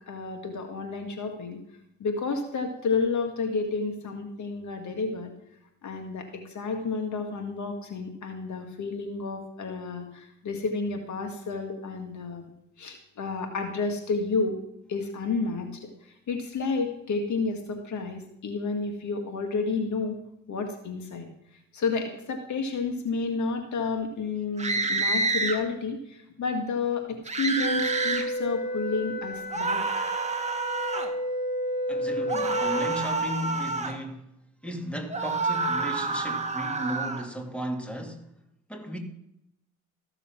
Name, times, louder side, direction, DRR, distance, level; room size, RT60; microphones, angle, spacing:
voice 1, 0.1-1.6 2.0-5.3 5.8-12.4 12.8-14.6 14.9-15.9 16.3-20.2 20.5-21.3 21.7-29.8, left 4 dB, 60° left, 1.9 m, -30 dB
sound 1, 24.6-25.6 27.3-28.3 29.5-31.1 32.3-34.0 35.1-37.2, right 3 dB, 20° right, 1.7 m, -28 dB
Wind instrument woodwind instrument, 27.6-33.0, equal, 25° left, 4.0 m, -31 dB
voice 2, 31.9-34.3 34.6-38.3 38.7-39.0, equal, 5° left, 2.5 m, -35 dB
14.0 x 7.0 x 5.8 m
supercardioid pair, 65°, 33 cm